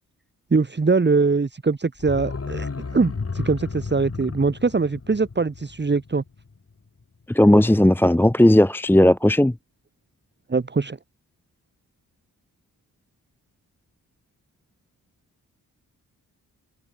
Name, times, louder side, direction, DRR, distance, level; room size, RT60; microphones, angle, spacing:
voice 1, 0.5-6.2 10.5-11.0, right 4 dB, 30° right, 1.6 m, -22 dB
sound 1, 2.0-6.7 7.0-7.1, left 4 dB, 40° left, 4.3 m, -33 dB
voice 2, 7.3-9.5, left 1 dB, 5° left, 0.8 m, -16 dB
cardioid pair, 60°, 37 cm